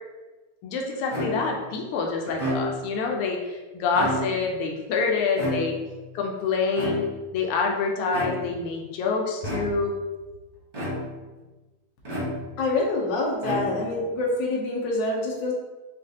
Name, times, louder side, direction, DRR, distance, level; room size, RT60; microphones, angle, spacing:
voice 1, 0.6-5.8 6.1-7.0 7.3-9.9, left 4 dB, 85° left, 1 dB, 1.5 m, -26 dB
sound 1, 1.1-1.7 2.3-3.0 3.8-4.6 5.4-6.1 6.8-7.4 8.1-8.7 9.4-10.0 10.7-11.3 12.1-12.7 13.4-14.1, equal, 75° right, 0.3 m, -31 dB
voice 2, 12.6-15.5, left 2 dB, 60° left, -2 dB, 1.4 m, -26 dB
6.2 x 2.5 x 2.8 m, 1.2 s
omnidirectional pair, 2.4 m